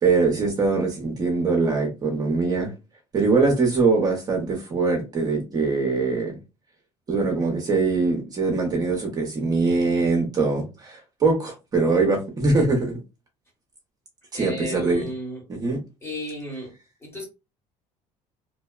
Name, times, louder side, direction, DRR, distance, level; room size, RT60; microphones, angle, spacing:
voice 1, 0.0-2.7 3.1-6.4 7.1-13.0 14.3-15.0 15.5-15.8, right 3 dB, 30° right, 0.7 m, -22 dB
voice 2, 14.3-15.4 16.0-16.8 17.0-17.3, equal, 20° left, 1.2 m, -33 dB
2.7 x 2.0 x 2.3 m
cardioid pair, 125°, 13 cm